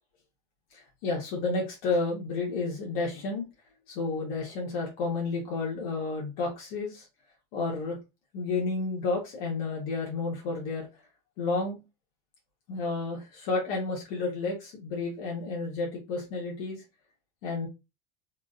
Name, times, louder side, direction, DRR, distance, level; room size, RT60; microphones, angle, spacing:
voice 1, 0.7-3.4 3.9-7.1 7.5-8.0 8.3-10.9 11.4-11.8 12.7-16.8 17.4-17.7, left 3 dB, 80° left, -2 dB, 1.3 m, -31 dB
3.6 x 2.5 x 2.4 m, 0.26 s
supercardioid pair, 125°, 29 cm